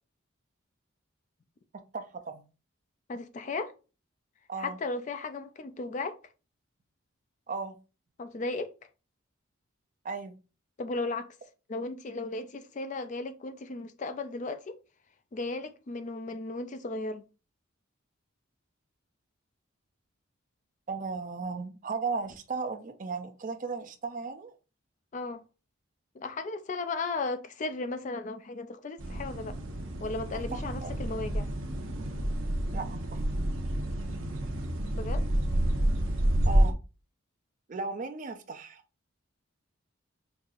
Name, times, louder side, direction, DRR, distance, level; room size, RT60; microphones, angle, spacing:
voice 1, 1.9-2.4 4.5-4.8 7.5-7.8 10.0-10.4 20.9-24.5 30.5-30.9 32.7-33.2 36.5-36.8 37.7-38.8, right 4 dB, 40° right, 0.4 m, -36 dB
voice 2, 3.1-3.7 4.6-6.2 8.2-8.7 10.8-11.3 11.7-14.8 15.3-17.2 25.1-25.4 26.1-29.6 30.0-31.5 34.9-35.3, left 3 dB, 35° left, 0.4 m, -35 dB
sound 1, 29.0-36.7, right 1 dB, 70° right, 0.8 m, -29 dB
5.4 x 2.7 x 2.4 m
head